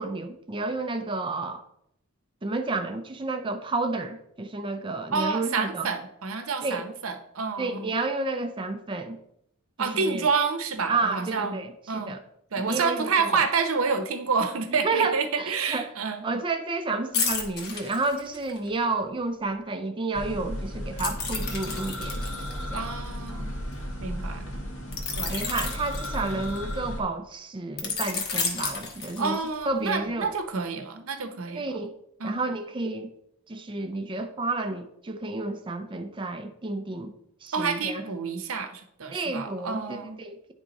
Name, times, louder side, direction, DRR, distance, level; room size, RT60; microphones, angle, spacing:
voice 1, 0.0-1.6 2.4-5.9 6.6-6.8 7.6-9.2 9.8-10.2 10.9-12.2 12.6-13.1 14.8-15.9 16.2-22.2 22.7-22.8 25.3-29.4 29.7-30.3 31.5-31.9 32.2-33.1 33.5-37.1 37.4-38.1 39.1-40.4, right 3 dB, 25° right, 0.4 m, -30 dB
voice 2, 5.1-7.9 9.8-12.2 12.5-16.2 22.7-23.6 24.0-24.5 25.2-25.5 26.2-26.4 29.2-31.8 32.2-32.6 37.5-40.2, right 5 dB, 75° right, 0.8 m, -29 dB
sound 1, 17.1-18.7 21.0-23.7 24.9-26.8 27.8-29.6 30.1-30.3, left 5 dB, 50° left, 1.1 m, -32 dB
sound 2, 20.1-27.0, equal, 80° left, 1.5 m, -34 dB
9.9 x 3.6 x 4.0 m
head